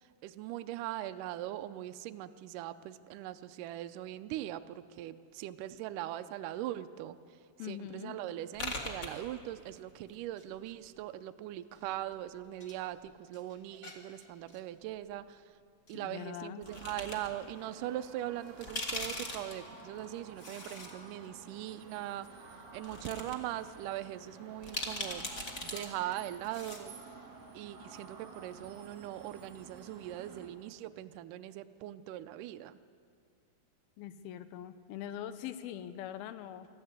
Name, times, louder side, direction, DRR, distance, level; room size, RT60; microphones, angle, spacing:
voice 1, 0.0-7.2 7.6-15.4 15.9-25.3 25.6-27.0 27.5-32.8, right 13 dB, 85° right, 9 dB, 1.8 m, -41 dB
voice 2, 7.6-8.2 15.9-16.6 34.0-36.7, left 10 dB, 80° left, 12 dB, 2.6 m, -42 dB
sound 1, 8.5-9.8 10.0-11.0 11.7-12.8 13.1-14.6 15.9-16.0 16.6-17.3 17.7-17.8 18.4-20.9 21.3-21.4 22.2-22.3 22.7-23.3 23.7-23.8 24.6-25.8 26.1-26.2 26.4-26.9, left 2 dB, 40° left, 0.9 m, -41 dB
sound 2, 16.7-30.5, right 4 dB, 45° right, 3.6 m, -52 dB
25.0 x 14.0 x 8.2 m, 2.3 s
omnidirectional pair, 4.5 m